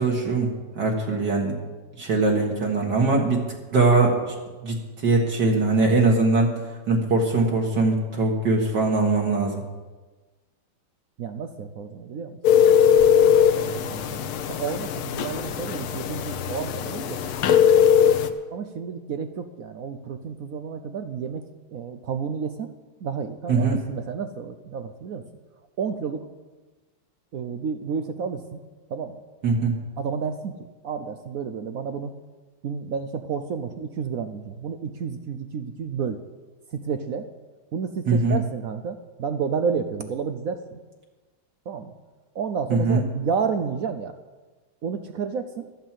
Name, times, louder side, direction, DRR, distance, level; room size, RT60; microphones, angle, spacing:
voice 1, 0.0-1.6 2.0-3.4 3.7-4.4 4.6-6.5 6.9-9.6 23.5-23.8 29.4-29.8 38.1-38.4 42.7-43.0, right 3 dB, 55° right, 0 dB, 2.2 m, -21 dB
voice 2, 11.2-12.4 13.5-17.4 18.5-22.7 23.0-25.2 25.8-26.3 27.3-28.6 28.9-29.2 30.0-32.1 32.6-36.2 36.7-37.3 37.7-40.8 41.7-41.9 42.3-44.1 44.8-45.6, right 6 dB, 75° right, 9 dB, 0.8 m, -31 dB
sound 1, 12.4-18.3, left 8 dB, 85° left, 1.7 m, -20 dB
13.0 x 9.0 x 7.5 m, 1.3 s
omnidirectional pair, 2.3 m